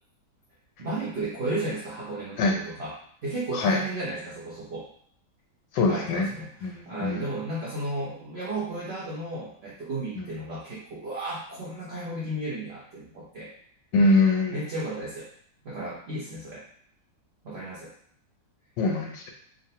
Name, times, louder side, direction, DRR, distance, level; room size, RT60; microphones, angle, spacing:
voice 1, 0.8-2.9 3.2-4.9 5.9-13.5 14.5-15.3 15.6-16.7 17.4-17.9, right 2 dB, 75° right, -7 dB, 0.6 m, -34 dB
voice 2, 5.7-6.3 6.6-7.3 10.2-10.3 13.9-14.6 18.8-19.3, left 2 dB, 90° left, 1 dB, 1.4 m, -23 dB
3.8 x 2.0 x 2.7 m, 0.65 s
omnidirectional pair, 1.9 m